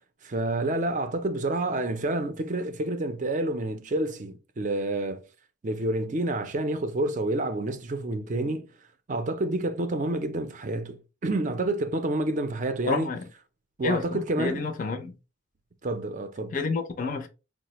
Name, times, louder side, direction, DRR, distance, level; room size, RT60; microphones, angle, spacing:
voice 1, 0.2-5.2 5.6-8.7 9.1-13.1 13.8-14.7 15.8-16.6, right 2 dB, 40° right, 0.4 m, -28 dB
voice 2, 12.9-13.3 13.8-15.1 16.5-17.3, left 4 dB, 40° left, 0.5 m, -29 dB
4.8 x 2.0 x 2.9 m
head